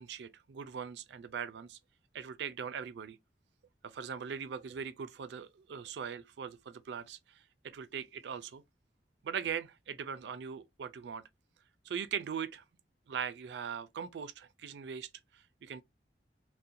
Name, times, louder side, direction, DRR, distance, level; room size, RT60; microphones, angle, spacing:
voice 1, 0.0-1.8 2.1-3.2 3.8-8.6 9.2-11.3 11.8-12.6 13.1-15.8, right 7 dB, 75° right, 0.4 m, -40 dB
2.5 x 2.1 x 2.7 m
head